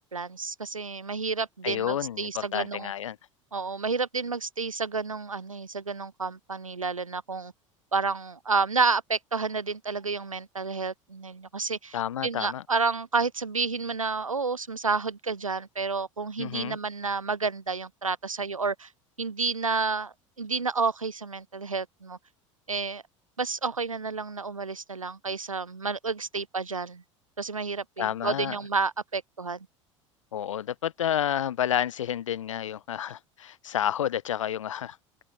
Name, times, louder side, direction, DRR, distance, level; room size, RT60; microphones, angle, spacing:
voice 1, 0.0-2.9 3.5-7.5 7.9-12.0 12.2-18.9 19.2-22.2 22.7-23.0 23.4-27.0 27.4-29.7, right 4 dB, 90° right, 0.5 m, -30 dB
voice 2, 1.6-3.2 11.9-12.6 16.4-16.8 28.0-28.6 30.3-35.0, left 10 dB, 70° left, 2.0 m, -30 dB
open air
figure-of-eight pair, 75°, 17 cm